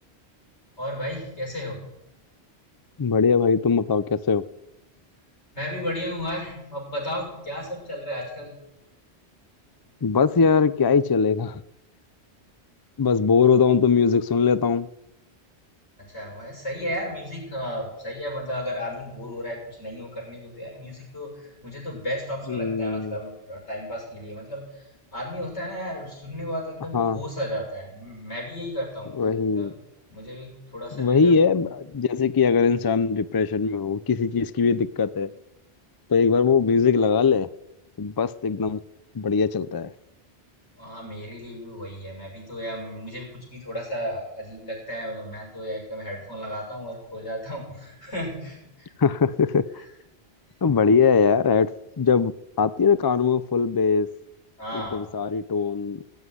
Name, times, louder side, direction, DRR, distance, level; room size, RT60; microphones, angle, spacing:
voice 1, 0.8-1.8 5.5-8.5 16.0-29.2 29.5-29.7 30.1-31.4 40.8-48.9 54.6-55.1, equal, 85° left, -1 dB, 6.8 m, -34 dB
voice 2, 3.0-4.4 10.0-11.6 13.0-14.9 22.5-23.1 26.9-27.2 29.2-29.7 30.9-35.3 36.1-37.5 38.0-38.8 39.1-39.9 49.0-49.6 50.6-51.7 52.0-52.3 52.6-54.1 54.7-56.0, left 5 dB, 35° left, 15 dB, 0.3 m, -21 dB
18.0 x 8.1 x 9.7 m, 0.90 s
omnidirectional pair, 1.1 m